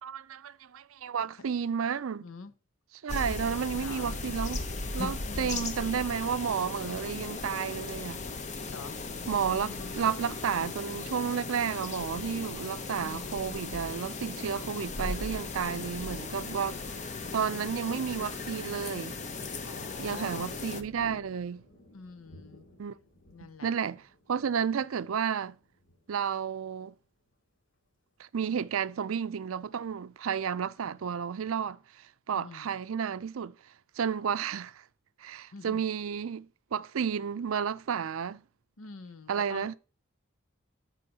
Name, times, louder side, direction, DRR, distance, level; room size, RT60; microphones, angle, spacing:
voice 1, 0.0-2.2 3.0-4.6 4.9-8.2 9.3-19.1 20.0-21.7 22.8-22.9 23.4-24.0 24.3-25.6 26.1-26.9 28.2-33.5 34.0-34.8 35.2-38.4 39.3-39.8, right 7 dB, 85° right, 0.4 m, -32 dB
voice 2, 2.2-2.5 3.8-4.1 5.3-5.7 8.7-9.0 9.5-10.0 13.0-13.4 17.2-17.7 19.6-20.5 21.9-22.7 23.3-23.7 32.3-32.8 35.5-35.8 38.8-39.8, left 4 dB, 85° left, 0.7 m, -46 dB
sound 1, 3.1-20.8, left 3 dB, 35° left, 0.7 m, -37 dB
Thunder, 14.6-27.3 27.8-28.0 28.3-28.9, equal, 60° left, 2.5 m, -58 dB
13.0 x 4.5 x 2.8 m
head